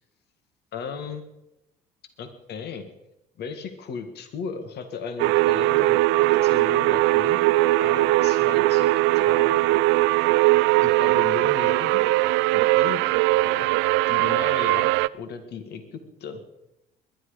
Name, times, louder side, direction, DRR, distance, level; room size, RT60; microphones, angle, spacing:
voice 1, 0.7-1.2 2.2-2.9 3.4-7.4 7.8-8.9 9.1-9.7 10.8-12.0 12.5-13.2 13.4-13.7 14.1-16.4, left 6 dB, 60° left, 8 dB, 2.0 m, -36 dB
sound 1, 5.2-15.1, right 19 dB, 75° right, 0.5 m, -20 dB
21.5 x 11.0 x 5.1 m, 0.87 s
hypercardioid pair, 65°, 19 cm